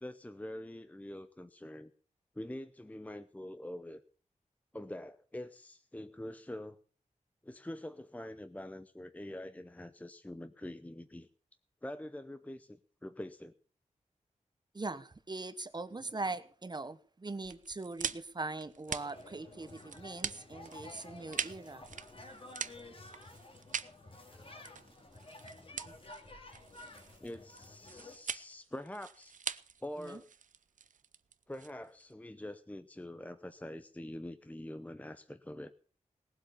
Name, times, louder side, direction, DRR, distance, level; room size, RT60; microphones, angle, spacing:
voice 1, 0.0-1.9 2.3-4.0 4.7-6.8 7.4-11.3 11.8-13.5 27.2-29.4 29.8-30.3 31.5-35.7, left 1 dB, 10° left, 11 dB, 0.7 m, -45 dB
voice 2, 14.7-21.8 25.8-25.9 30.0-30.2, right 3 dB, 35° right, 12 dB, 1.1 m, -41 dB
sound 1, 17.4-32.1, right 6 dB, 75° right, 0.7 m, -43 dB
sound 2, 18.9-28.2, left 2 dB, 45° left, 3.0 m, -52 dB
18.5 x 8.0 x 7.1 m, 0.44 s
wide cardioid pair, 95°, 13 cm